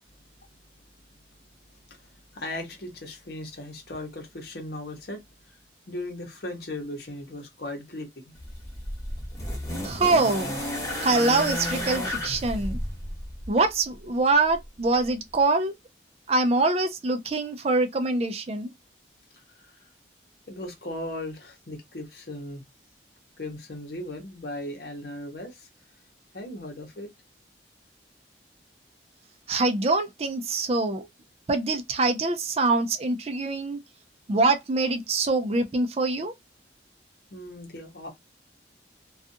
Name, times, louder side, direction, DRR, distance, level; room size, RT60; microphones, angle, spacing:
voice 1, 1.9-5.2 5.5-5.6 5.9-8.3 19.3-19.9 20.5-22.6 23.4-25.7 26.3-27.1 37.3-38.1, left 1 dB, 60° left, 0.9 m, -37 dB
sound 1, 8.4-13.6 14.6-14.7, equal, 20° left, 0.9 m, -32 dB
voice 2, 9.8-10.5 11.0-12.8 13.5-15.7 16.3-18.7 29.5-31.1 31.5-33.8 34.3-36.3, right 3 dB, 35° right, 0.4 m, -24 dB
2.4 x 2.3 x 2.5 m
head